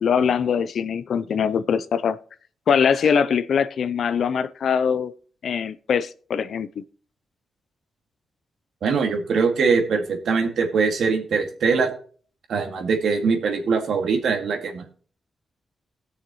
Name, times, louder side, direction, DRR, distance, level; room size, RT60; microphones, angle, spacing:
voice 1, 0.0-2.2 2.7-5.1 5.4-6.8, left 7 dB, 70° left, 0.6 m, -22 dB
voice 2, 8.8-11.9 12.5-14.9, right 5 dB, 75° right, 2.1 m, -22 dB
18.0 x 6.5 x 3.1 m
cardioid pair, 80°, 0 cm